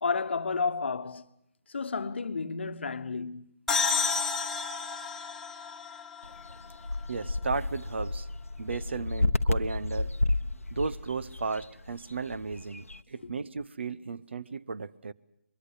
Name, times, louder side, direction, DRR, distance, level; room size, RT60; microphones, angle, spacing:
voice 1, 0.0-1.3 1.7-3.5, left 4 dB, 55° left, 1.1 m, -31 dB
sound 1, 3.7-7.2, left 5 dB, 5° left, 1.4 m, -31 dB
sound 2, 6.2-13.0, left 2 dB, 85° left, 0.9 m, -32 dB
voice 2, 7.1-8.3 8.6-10.1 10.7-15.1, right 4 dB, 55° right, 0.9 m, -34 dB
23.0 x 23.0 x 8.0 m
figure-of-eight pair, 150°, 7 cm